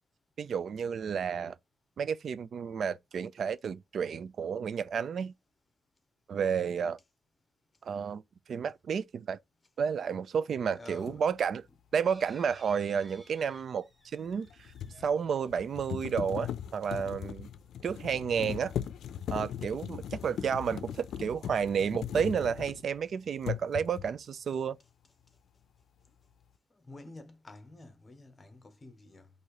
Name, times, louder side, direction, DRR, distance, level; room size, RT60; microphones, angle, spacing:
voice 1, 0.4-1.6 2.0-5.3 6.3-7.0 7.8-8.2 8.5-9.4 9.8-11.7 11.9-14.5 15.0-17.5 17.8-18.7 19.3-24.8, right 7 dB, 55° right, 0.4 m, -31 dB
voice 2, 10.7-11.2 26.7-29.3, left 2 dB, 25° left, 0.9 m, -50 dB
sound 1, 11.1-11.2 14.3-23.0 23.4-24.2, left 9 dB, 80° left, 0.5 m, -39 dB
sound 2, 12.0-16.7 17.3-17.4 17.6-17.7, equal, 5° right, 0.9 m, -59 dB
4.2 x 2.7 x 4.7 m
wide cardioid pair, 155°, 0 cm